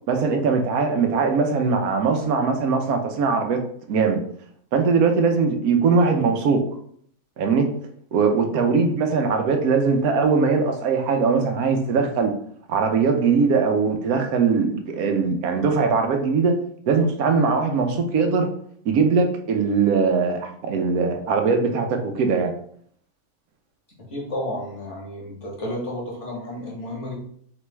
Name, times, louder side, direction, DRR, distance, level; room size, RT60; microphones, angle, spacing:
voice 1, 0.1-3.6 3.9-4.2 4.7-6.6 7.4-7.7 8.1-12.3 12.7-16.6 16.9-18.5 18.8-22.5, right 5 dB, 85° right, 5 dB, 1.1 m, -21 dB
voice 2, 24.1-27.1, left 1 dB, 55° left, -3 dB, 1.7 m, -31 dB
4.0 x 3.1 x 3.3 m, 0.63 s
omnidirectional pair, 1.5 m